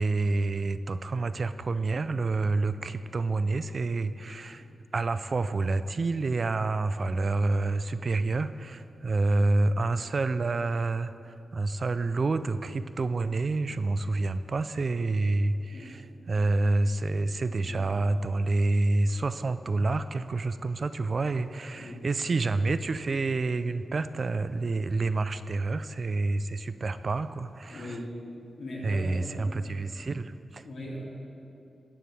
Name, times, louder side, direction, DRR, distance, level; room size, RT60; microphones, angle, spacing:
voice 1, 0.0-4.7 4.9-28.0 28.8-30.6, right 3 dB, 45° right, 12 dB, 0.4 m, -28 dB
voice 2, 27.7-28.1 28.6-29.5 30.6-31.0, left 1 dB, 90° left, -5 dB, 2.6 m, -39 dB
14.5 x 9.0 x 3.3 m, 2.7 s
wide cardioid pair, 90°, 0 cm